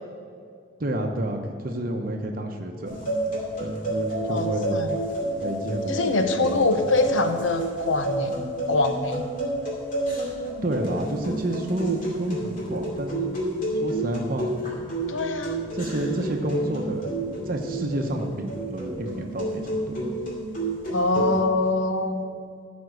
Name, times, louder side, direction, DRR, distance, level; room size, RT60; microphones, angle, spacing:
voice 1, 0.8-3.1 3.6-4.8 5.4-6.7 10.6-13.3 13.8-14.5 15.3-17.2 17.5-20.0 21.1-21.3, right 1 dB, 45° right, 3 dB, 0.8 m, -30 dB
sound 1, 2.8-21.4, right 1 dB, 45° left, 2.4 m, -30 dB
voice 2, 4.3-5.0 5.9-8.4 8.7-9.2 15.1-15.6 20.9-22.2, left 2 dB, 75° left, 7 dB, 0.8 m, -24 dB
14.0 x 5.2 x 6.5 m, 2.2 s
head